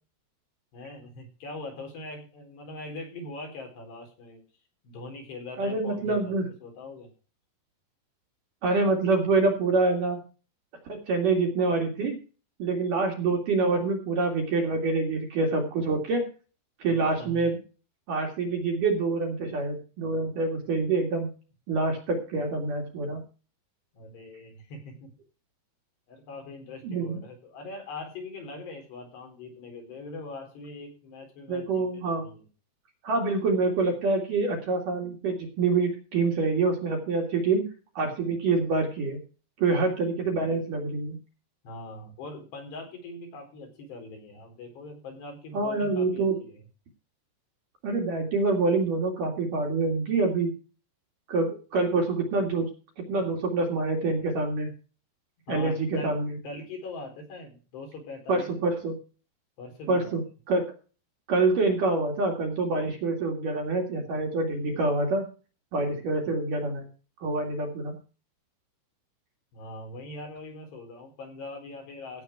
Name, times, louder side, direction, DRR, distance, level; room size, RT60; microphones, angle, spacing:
voice 1, 0.7-4.4 4.8-6.3 6.6-7.1 16.9-17.5 23.9-25.1 26.1-32.5 41.6-46.6 55.5-56.2 56.4-58.5 59.6-60.1 66.3-66.4 69.5-72.2, left 2 dB, 60° left, 2 dB, 6.1 m, -42 dB
voice 2, 5.6-6.5 8.6-10.2 10.9-12.2 12.6-16.2 16.8-17.6 18.1-21.3 21.7-23.2 26.8-27.2 31.5-32.3 33.0-37.7 37.9-39.2 39.6-41.2 45.5-46.4 47.8-50.5 51.3-52.7 53.1-54.7 55.5-56.4 58.3-59.0 59.9-60.2 60.5-60.7 61.3-65.2 65.7-66.9 67.2-68.0, right 3 dB, 50° right, 1 dB, 3.1 m, -26 dB
16.0 x 8.2 x 4.7 m, 0.36 s
omnidirectional pair, 5.6 m